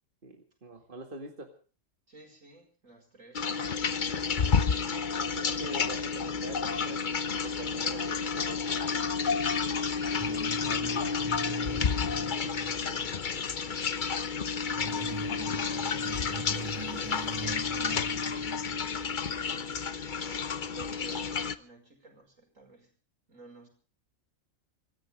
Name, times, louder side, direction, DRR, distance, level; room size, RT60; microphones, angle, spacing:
voice 1, 0.2-1.5 4.8-7.0 7.4-9.5 10.3-12.1 12.4-13.4 16.6-16.8, right 3 dB, 40° right, 4 dB, 2.4 m, -45 dB
voice 2, 2.1-3.9 13.3-13.9 14.7-16.2 17.4-19.9 20.6-22.9 23.3-23.7, right 2 dB, 75° right, 4 dB, 5.6 m, -53 dB
sound 1, 3.4-21.6, left 5 dB, 40° left, 0.9 m, -30 dB
sound 2, 10.2-13.6 14.5-19.3, right 3 dB, 20° right, 1.0 m, -43 dB
26.0 x 14.5 x 3.5 m, 0.39 s
omnidirectional pair, 1.4 m